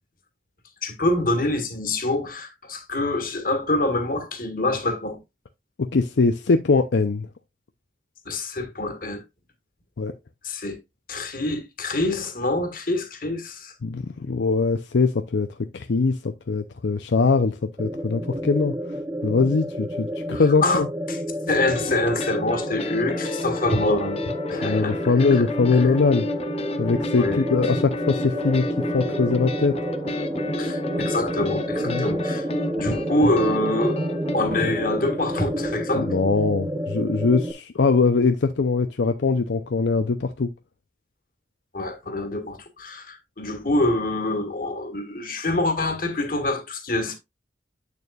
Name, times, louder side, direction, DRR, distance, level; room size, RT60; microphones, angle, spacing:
voice 1, 0.8-5.2 8.2-9.2 10.4-10.8 11.1-13.7 20.3-21.2 21.5-25.4 25.8-25.9 27.2-27.4 30.6-32.5 32.7-34.0 34.3-36.1 41.7-47.1, left 2 dB, 50° left, 1.6 m, -26 dB
voice 2, 5.8-7.3 10.0-10.1 13.8-15.5 15.7-18.8 19.2-20.9 24.6-26.3 26.8-28.7 28.9-29.8 31.8-32.1 35.9-40.5, left 4 dB, 75° left, 0.5 m, -22 dB
sound 1, 17.8-37.5, right 1 dB, 15° right, 0.6 m, -30 dB
sound 2, 21.7-34.4, left 3 dB, 35° left, 0.8 m, -32 dB
8.4 x 6.7 x 2.3 m
head